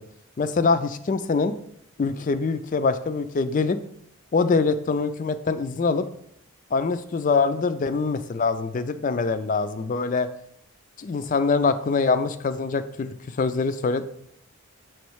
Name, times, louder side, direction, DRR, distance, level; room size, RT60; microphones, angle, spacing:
voice 1, 0.4-1.5 2.0-3.8 4.3-6.1 6.7-10.3 11.0-14.1, left 4 dB, 35° left, 11 dB, 0.3 m, -24 dB
7.1 x 3.1 x 4.6 m, 0.68 s
head